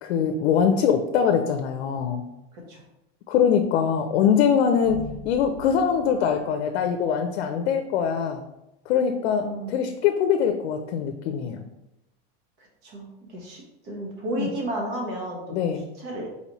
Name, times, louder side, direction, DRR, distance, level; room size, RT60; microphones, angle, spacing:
voice 1, 0.0-2.2 3.3-8.4 8.9-11.6 14.4-14.5 15.5-15.8, left 7 dB, 90° left, 6 dB, 0.5 m, -23 dB
voice 2, 2.5-2.8 9.4-9.9 12.6-15.6 16.0-16.3, right 1 dB, 45° right, -1 dB, 1.2 m, -33 dB
sound 1, 4.8-7.3, left 2 dB, 35° left, 1.2 m, -42 dB
4.2 x 4.1 x 3.0 m, 0.91 s
supercardioid pair, 175°, 32 cm